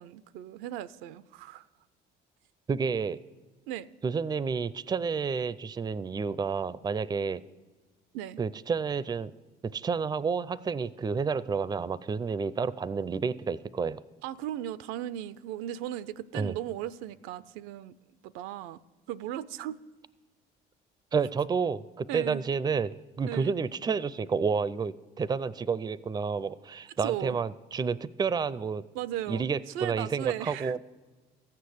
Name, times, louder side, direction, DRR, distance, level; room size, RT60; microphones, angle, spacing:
voice 1, 0.0-1.7 3.7-3.9 8.1-8.4 14.2-18.0 18.2-18.8 19.1-19.8 22.1-22.4 23.3-23.5 27.0-27.4 28.9-30.8, right 12 dB, 80° right, 0.4 m, -37 dB
voice 2, 2.7-3.2 4.0-7.4 8.4-9.3 9.7-14.0 16.3-16.5 21.1-28.8 29.3-30.8, right 5 dB, 20° right, 0.4 m, -30 dB
14.5 x 6.7 x 8.0 m
supercardioid pair, 75°, 20 cm